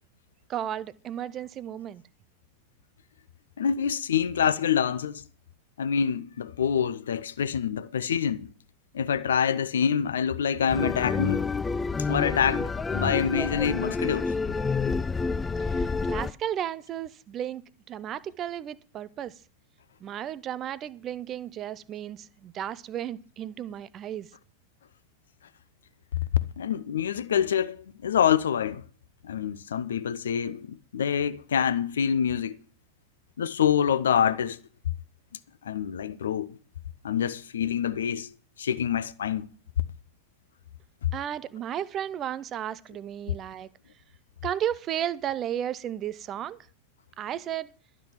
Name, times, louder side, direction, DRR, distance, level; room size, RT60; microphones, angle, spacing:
voice 1, 0.5-2.0 15.3-17.6 17.9-19.3 20.0-24.3 41.1-43.7 44.4-46.6 47.2-47.7, right 10 dB, 30° right, 0.7 m, -34 dB
voice 2, 3.6-5.2 5.8-8.5 8.9-11.5 12.0-14.4 26.6-28.8 29.2-32.6 33.4-34.6 35.6-36.6 37.0-39.5 41.0-41.1 43.3-43.4, left 8 dB, 65° left, 0.7 m, -26 dB
sound 1, 10.7-16.3, left 4 dB, 15° left, 0.5 m, -28 dB
12.0 x 6.1 x 8.6 m
figure-of-eight pair, 90°, 0 cm